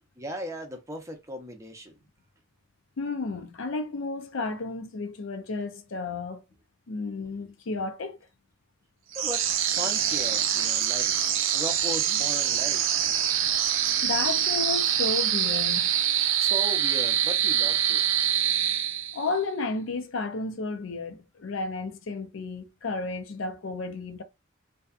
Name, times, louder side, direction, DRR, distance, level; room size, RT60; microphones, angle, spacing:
voice 1, 0.2-2.0 7.3-7.4 9.1-11.1 11.5-13.1 16.4-18.0, equal, 15° right, 0.5 m, -37 dB
voice 2, 3.0-6.4 6.9-8.2 14.0-16.0 19.1-24.2, left 3 dB, 65° left, 0.5 m, -32 dB
sound 1, 9.1-19.4, right 10 dB, 65° right, 0.5 m, -25 dB
2.6 x 2.2 x 2.3 m
head